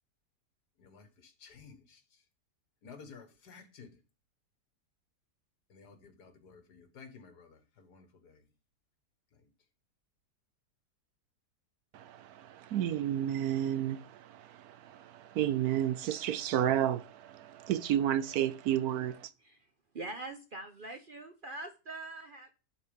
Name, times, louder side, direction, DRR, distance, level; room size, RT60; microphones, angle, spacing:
voice 1, 0.8-2.2 2.8-4.0 5.7-8.5 9.3-9.4, left 5 dB, 75° left, 2.1 m, -54 dB
voice 2, 11.9-19.3, right 11 dB, 70° right, 1.0 m, -32 dB
voice 3, 19.9-22.5, right 2 dB, 45° right, 0.7 m, -43 dB
11.0 x 4.2 x 5.2 m
omnidirectional pair, 1.7 m